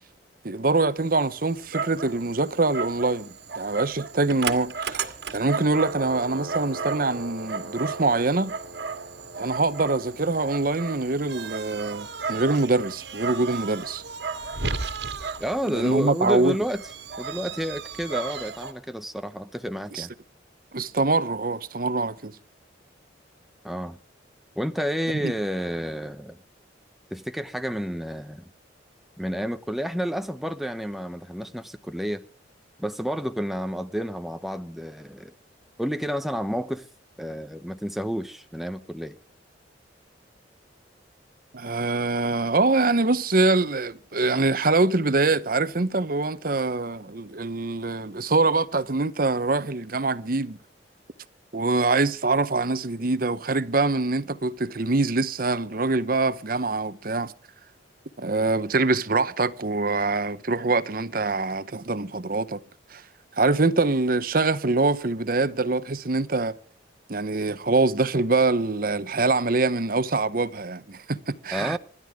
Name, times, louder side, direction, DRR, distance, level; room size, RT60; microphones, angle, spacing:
voice 1, 0.4-8.5 9.4-14.0 15.7-16.6 19.9-20.1 20.7-22.3 25.2-25.3 41.5-50.6 51.5-57.3 58.2-62.6 62.9-63.0 63.4-66.6 67.1-71.8, right 3 dB, 50° right, 0.9 m, -24 dB
Dog, 1.0-18.7, right 4 dB, 65° right, 1.9 m, -34 dB
voice 2, 15.4-16.8 17.2-20.1 23.6-24.0 24.6-26.4 27.1-28.5 29.2-32.2 32.8-35.3 35.8-36.9 37.2-39.2 71.5-71.8, equal, ahead, 0.7 m, -30 dB
26.5 x 12.5 x 3.6 m
head